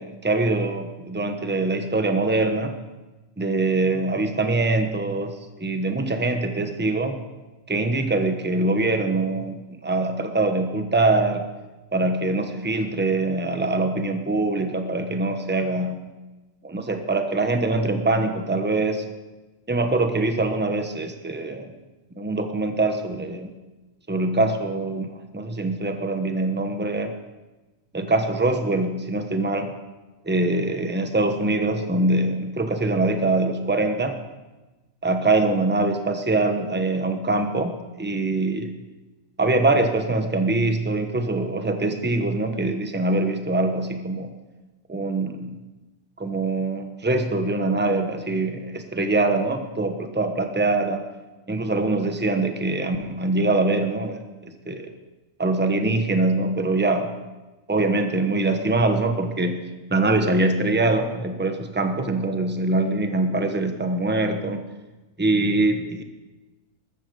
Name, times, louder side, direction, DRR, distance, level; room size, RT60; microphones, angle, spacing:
voice 1, 0.0-2.7 3.4-5.3 5.6-7.2 7.7-11.4 11.9-16.0 16.6-19.1 19.7-21.7 22.2-23.5 24.1-27.1 27.9-29.7 30.2-34.2 35.0-38.7 39.4-44.3 44.9-45.5 46.2-51.0 51.5-54.9 55.4-57.2 57.7-59.6 59.9-64.6 65.2-66.0, right 2 dB, 10° right, 6 dB, 1.0 m, -23 dB
14.0 x 13.0 x 5.2 m, 1.1 s
omnidirectional pair, 1.3 m